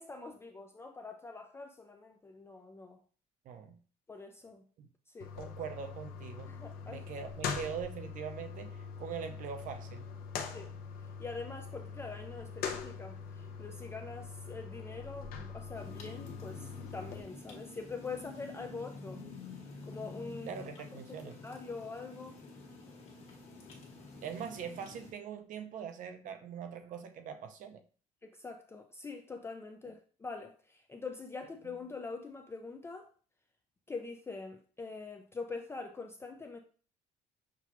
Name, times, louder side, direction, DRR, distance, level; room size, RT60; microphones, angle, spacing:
voice 1, 0.0-3.0 4.1-4.6 5.1-5.3 6.5-7.3 10.5-10.7 11.2-19.2 19.9-20.5 21.2-22.4 28.2-33.1 33.9-36.6, left 4 dB, 15° left, 0.3 m, -44 dB
voice 2, 3.4-3.8 4.8-4.9 5.4-6.5 6.8-10.1 20.4-21.4 24.2-27.8, right 7 dB, 55° right, 0.6 m, -42 dB
sound 1, 5.2-17.2, left 6 dB, 70° left, 0.7 m, -43 dB
sound 2, 15.7-25.1, left 3 dB, 40° left, 1.3 m, -49 dB
5.9 x 2.3 x 2.9 m
cardioid pair, 130°, 16 cm